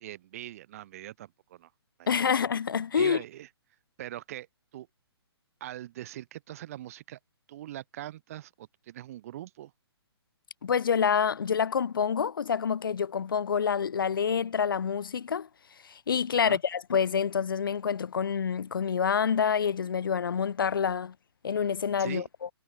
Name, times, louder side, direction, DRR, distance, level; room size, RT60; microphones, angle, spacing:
voice 1, 0.0-1.7 2.0-2.3 2.9-3.5 4.0-4.5 4.7-4.9 5.6-7.2 7.5-9.7 16.4-16.6 22.0-22.3, right 13 dB, 35° right, 1.0 m, -42 dB
voice 2, 2.1-3.2 10.6-15.5 15.8-21.1 21.4-22.5, left 7 dB, 55° left, 1.1 m, -27 dB
figure-of-eight pair, 130°, 14 cm